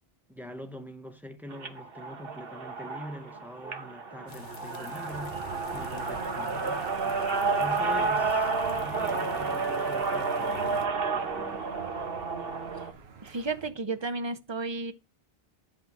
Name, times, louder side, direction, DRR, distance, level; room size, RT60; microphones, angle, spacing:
voice 1, 0.3-6.9 7.6-11.6, equal, ahead, 0.9 m, -44 dB
sound 1, 1.5-12.9, right 4 dB, 65° right, 1.4 m, -31 dB
sound 2, 4.3-10.9, left 3 dB, 85° left, 1.1 m, -47 dB
Aircraft / Engine, 5.1-13.7, right 6 dB, 90° right, 1.2 m, -47 dB
voice 2, 13.2-14.9, right 3 dB, 30° right, 0.6 m, -32 dB
10.0 x 3.6 x 6.1 m
omnidirectional pair, 1.0 m